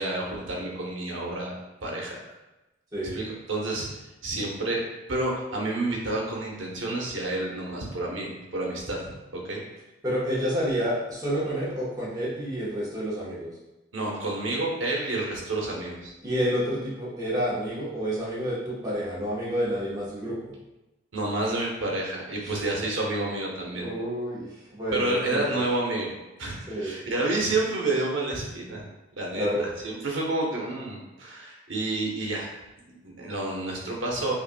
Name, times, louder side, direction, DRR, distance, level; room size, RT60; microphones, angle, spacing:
voice 1, 0.0-1.5 1.8-2.2 3.1-3.2 3.5-3.9 4.2-4.8 5.1-9.6 13.9-16.1 21.1-23.8 24.9-26.1 26.4-28.8 29.2-29.5 29.8-32.5 32.9-34.3, right 2 dB, 80° right, -2 dB, 0.9 m, -29 dB
voice 2, 10.0-13.5 16.2-20.5 22.4-22.6 23.8-25.6 26.7-26.9 29.3-29.7, equal, 20° right, -7 dB, 1.1 m, -29 dB
5.5 x 2.5 x 2.2 m, 1.0 s
head